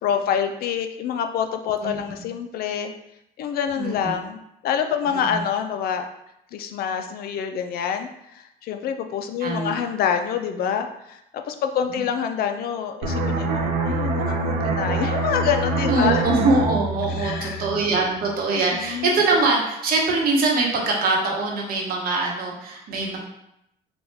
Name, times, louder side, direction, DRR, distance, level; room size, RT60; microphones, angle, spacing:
voice 1, 0.0-2.9 3.4-6.1 6.5-11.2 11.5-16.2 17.2-17.7 18.7-19.1, left 8 dB, 65° left, 7 dB, 0.4 m, -26 dB
voice 2, 1.8-2.2 3.8-4.1 5.1-5.4 9.4-9.8 11.9-12.0 15.9-23.2, right 3 dB, 60° right, -1 dB, 1.0 m, -23 dB
sound 1, 13.0-18.4 18.7-19.0, right 2 dB, 90° right, 0.7 m, -25 dB
4.2 x 2.3 x 3.3 m, 0.81 s
cardioid pair, 110°, 17 cm